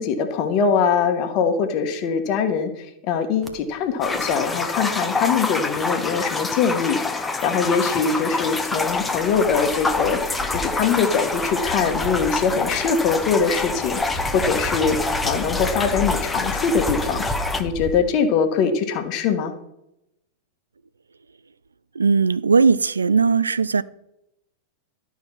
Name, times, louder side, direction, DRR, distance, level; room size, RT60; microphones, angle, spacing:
voice 1, 0.0-19.5, left 6 dB, 40° left, 1.4 m, -22 dB
sound 1, 3.4-3.6 4.1-4.3 4.7-6.2 6.7-6.8 8.6-17.9, equal, 5° right, 1.4 m, -34 dB
sound 2, 4.0-17.6, left 3 dB, 10° left, 0.9 m, -26 dB
voice 2, 22.0-23.8, right 5 dB, 75° right, 0.3 m, -18 dB
12.5 x 4.8 x 6.0 m
figure-of-eight pair, 90°, 0 cm